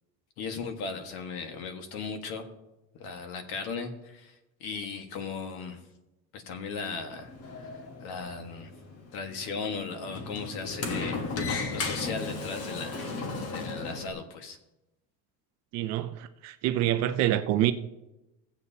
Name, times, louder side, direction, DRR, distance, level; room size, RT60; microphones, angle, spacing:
voice 1, 0.4-2.5 3.0-4.4 4.6-5.8 6.3-7.3 8.0-8.7 9.1-13.1 13.4-14.6, left 4 dB, 60° left, 1.6 m, -37 dB
Sliding door, 7.1-14.1, left 3 dB, 35° left, 1.1 m, -35 dB
voice 2, 15.7-17.7, right 13 dB, 40° right, 0.4 m, -26 dB
17.0 x 8.0 x 2.8 m
cardioid pair, 180°, 41 cm